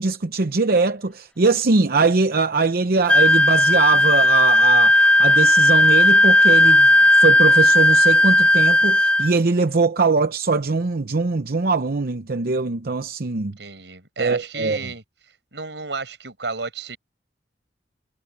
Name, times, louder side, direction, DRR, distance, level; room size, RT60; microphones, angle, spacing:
voice 1, 0.0-13.6 14.2-14.8, right 4 dB, 60° right, 0.8 m, -21 dB
Wind instrument woodwind instrument, 3.1-9.3, left 1 dB, 5° left, 0.4 m, -15 dB
voice 2, 13.6-15.0 15.5-17.0, right 4 dB, 90° right, 5.2 m, -32 dB
head